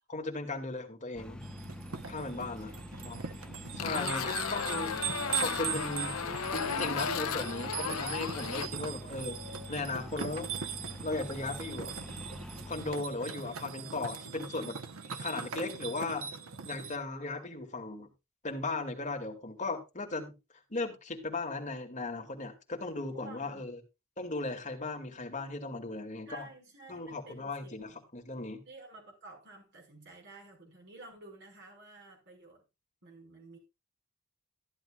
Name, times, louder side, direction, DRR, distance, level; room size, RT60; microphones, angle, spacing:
voice 1, 0.1-1.5 2.0-2.7 3.0-3.2 3.7-4.9 5.4-6.1 6.5-9.4 9.7-10.5 11.0-11.9 12.7-14.8 15.2-16.2 16.6-18.1 18.4-20.3 20.7-23.8 24.2-26.5 26.9-28.6, left 3 dB, 35° left, 2.2 m, -37 dB
sound 1, 1.1-13.0, left 1 dB, 5° left, 0.7 m, -46 dB
sound 2, 1.4-17.0, right 8 dB, 75° right, 1.0 m, -40 dB
voice 2, 2.6-4.5 5.9-6.5 6.9-7.4 23.1-23.6 26.2-28.0 28.6-32.6 33.0-33.6, right 3 dB, 55° right, 5.2 m, -52 dB
sound 3, 3.8-8.7, left 6 dB, 80° left, 0.7 m, -34 dB
14.0 x 11.0 x 2.4 m
head